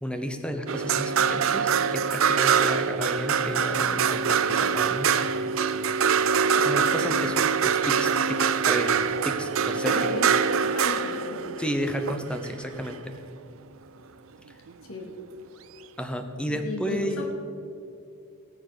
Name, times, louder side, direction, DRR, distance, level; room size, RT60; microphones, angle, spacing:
voice 1, 0.0-5.1 6.6-10.2 11.6-13.1 16.0-17.2, equal, 5° left, 7 dB, 0.9 m, -32 dB
sound 1, 0.7-13.0 14.7-14.8, right 6 dB, 70° right, 0.5 m, -24 dB
voice 2, 9.8-10.3 10.7-11.4 14.9-15.2 16.5-17.2, left 2 dB, 75° left, 2 dB, 2.4 m, -34 dB
18.0 x 7.4 x 6.8 m, 2.5 s
head